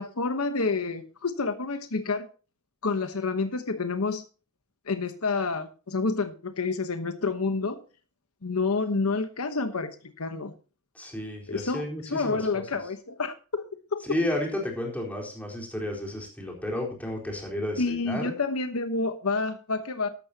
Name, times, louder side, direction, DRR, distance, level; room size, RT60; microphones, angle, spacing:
voice 1, 0.0-2.3 2.8-4.2 4.9-7.8 8.4-10.5 11.5-13.6 13.9-14.0 17.8-20.1, left 3 dB, 75° left, 9 dB, 1.1 m, -29 dB
voice 2, 10.9-12.6 14.0-18.3, left 1 dB, 5° left, -1 dB, 4.2 m, -32 dB
13.5 x 12.0 x 2.8 m, 0.35 s
head